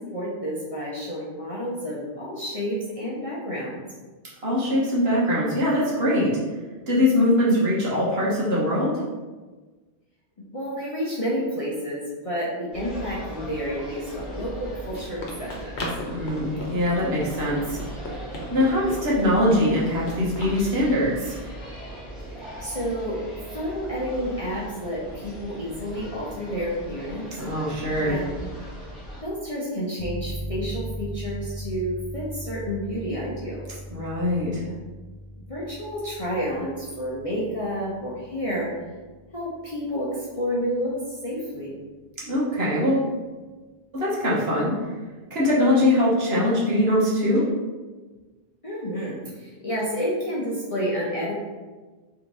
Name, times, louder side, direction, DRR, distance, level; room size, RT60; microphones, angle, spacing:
voice 1, 0.1-3.8 10.5-15.7 22.6-23.2 23.5-27.2 28.0-28.5 29.2-33.7 34.6-34.9 35.5-38.7 39.3-41.8 48.6-51.3, equal, 35° left, -7 dB, 0.8 m, -30 dB
voice 2, 4.4-6.4 6.9-9.0 16.1-17.8 18.5-21.4 27.4-28.2 33.9-34.6 42.2-43.1 43.9-44.8 45.3-47.5, left 1 dB, 65° right, -6 dB, 1.4 m, -22 dB
sound 1, 12.7-29.2, right 1 dB, ahead, 1.1 m, -39 dB
Run, 14.4-20.6, left 1 dB, 75° left, 1.1 m, -36 dB
sound 2, 30.0-40.5, equal, 25° right, 0.7 m, -38 dB
3.5 x 3.1 x 4.0 m, 1.3 s
omnidirectional pair, 1.1 m